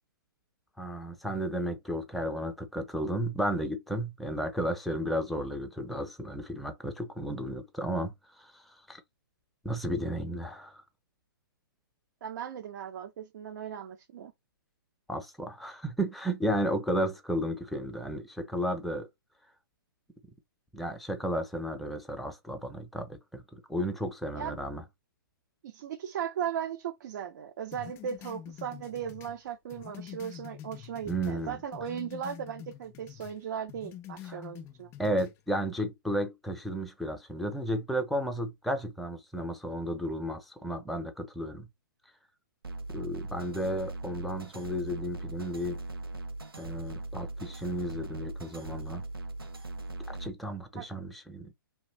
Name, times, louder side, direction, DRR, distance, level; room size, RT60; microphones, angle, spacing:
voice 1, 0.8-9.0 9.6-10.8 15.1-19.1 20.7-24.8 31.0-31.6 34.3-34.4 35.0-41.7 42.9-45.8 46.6-49.0 50.1-51.5, equal, ahead, 0.7 m, -33 dB
voice 2, 12.2-14.3 24.3-24.6 25.6-34.9 50.7-50.9, right 8 dB, 50° right, 0.7 m, -37 dB
sound 1, 27.7-31.4 31.7-33.4 33.7-35.3, left 11 dB, 20° left, 0.4 m, -46 dB
sound 2, 42.6-50.3, right 2 dB, 85° right, 0.9 m, -39 dB
2.8 x 2.5 x 3.3 m
figure-of-eight pair, 125°, 12 cm